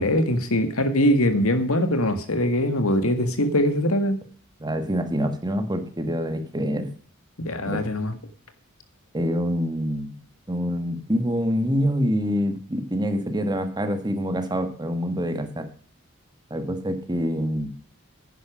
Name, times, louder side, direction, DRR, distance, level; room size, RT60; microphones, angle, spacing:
voice 1, 0.0-4.2 7.4-8.2, left 1 dB, 85° left, 9 dB, 1.9 m, -22 dB
voice 2, 4.6-6.9 7.6-7.8 9.1-15.7 16.5-17.7, equal, 20° right, 8 dB, 1.7 m, -26 dB
10.0 x 10.0 x 6.2 m, 0.43 s
head